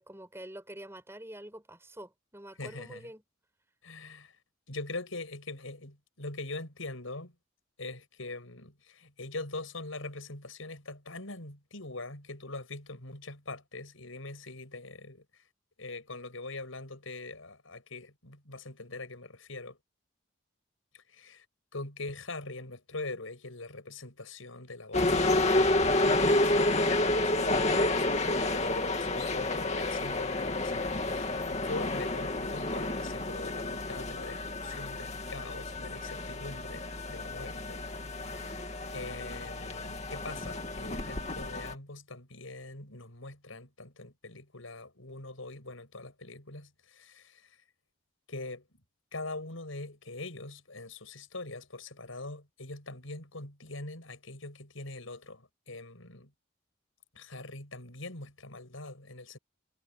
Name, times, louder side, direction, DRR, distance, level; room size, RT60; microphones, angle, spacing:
voice 1, 0.0-3.2 38.3-38.8, right 1 dB, 10° right, 6.7 m, -47 dB
voice 2, 2.6-3.1 3.8-4.3 4.7-7.3 7.8-15.2 15.8-19.8 20.9-21.4 21.7-37.8 38.3-38.4 38.9-47.5 48.3-48.6 49.1-56.3 57.1-59.4, left 2 dB, 80° left, 6.1 m, -43 dB
sound 1, 24.9-41.7, left 2 dB, 35° left, 2.4 m, -30 dB
head